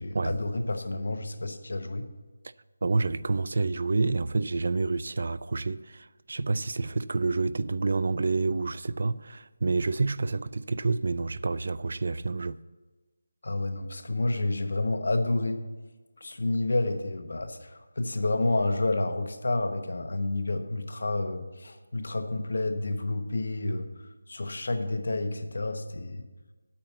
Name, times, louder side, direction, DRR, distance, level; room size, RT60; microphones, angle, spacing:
voice 1, 0.0-2.1 13.4-15.6 16.2-23.9 24.3-26.2, left 2 dB, 70° left, 1.1 m, -29 dB
voice 2, 2.8-12.6, right 3 dB, 55° right, 0.3 m, -28 dB
8.6 x 5.9 x 7.9 m
figure-of-eight pair, 175°, 0 cm